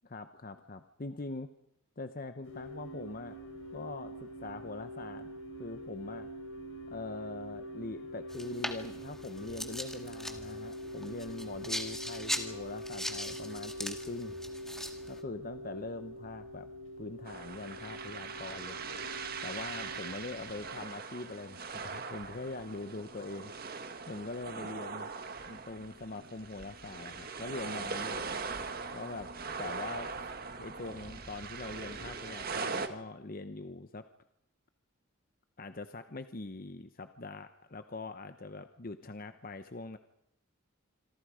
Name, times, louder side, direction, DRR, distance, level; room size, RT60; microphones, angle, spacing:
voice 1, 0.0-1.5 2.0-3.4 3.7-5.3 5.6-6.3 6.9-14.3 15.1-16.7 17.0-18.8 19.4-23.7 24.1-25.1 25.5-28.3 28.9-30.1 30.6-34.0 35.6-40.0, left 2 dB, 40° left, 9 dB, 0.8 m, -43 dB
sound 1, 2.4-20.9, equal, 70° left, 4.9 m, -44 dB
sound 2, 8.3-15.2, left 1 dB, ahead, 1.8 m, -40 dB
sound 3, 17.2-32.9, right 4 dB, 45° right, 1.7 m, -41 dB
27.0 x 25.0 x 5.0 m, 0.81 s
head